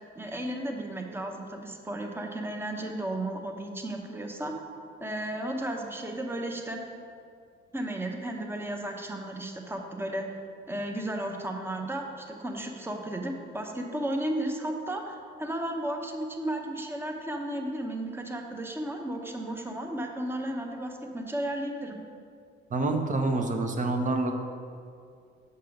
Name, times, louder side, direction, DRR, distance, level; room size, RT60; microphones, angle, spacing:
voice 1, 0.2-4.5 5.0-6.8 7.7-10.3 10.7-22.0, right 1 dB, 10° right, 2 dB, 0.9 m, -34 dB
voice 2, 22.7-24.3, right 2 dB, 40° right, 4 dB, 0.9 m, -27 dB
6.7 x 5.4 x 5.2 m, 2.3 s
cardioid pair, 90°, 20 cm